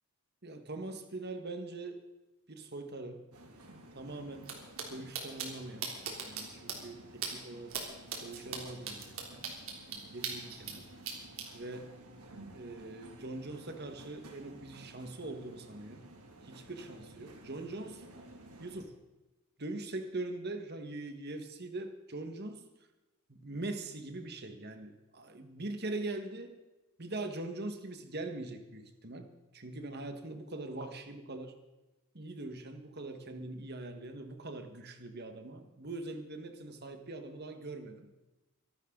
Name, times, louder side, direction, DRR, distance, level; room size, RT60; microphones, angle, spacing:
voice 1, 0.4-2.0 2.5-3.3 3.9-4.5 4.9-5.9 6.2-7.8 8.2-9.4 9.9-10.9 11.5-11.9 12.5-16.0 16.4-18.1 18.6-19.0 19.6-22.7 23.3-26.6 27.0-31.6 32.1-38.1, right 2 dB, 45° right, 7 dB, 1.8 m, -42 dB
sound 1, 3.3-18.8, right 1 dB, 90° right, 2.7 m, -54 dB
sound 2, 4.4-4.5 4.8-4.9 5.1-5.5 5.8-6.4 6.7-6.8 7.2-7.3 7.7-7.8 8.1-10.7 11.0-11.4, right 7 dB, 65° right, 3.4 m, -37 dB
24.0 x 12.5 x 4.0 m, 1.1 s
head